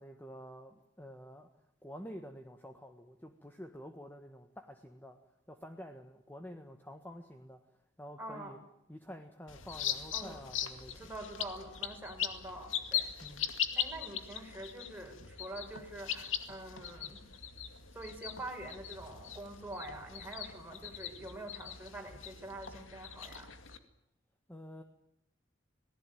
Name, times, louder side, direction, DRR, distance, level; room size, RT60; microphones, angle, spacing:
voice 1, 0.0-1.5 1.8-5.2 5.5-7.6 8.0-8.6 8.9-11.1 13.2-13.5 24.5-24.8, equal, 10° left, 5 dB, 1.5 m, -49 dB
voice 2, 8.2-8.5 10.1-10.4 11.0-13.1 13.7-17.2 17.9-23.5, right 1 dB, 10° right, 2 dB, 5.3 m, -45 dB
sound 1, 9.5-23.8, left 9 dB, 85° left, 2.3 m, -40 dB
26.5 x 19.0 x 9.3 m, 0.80 s
head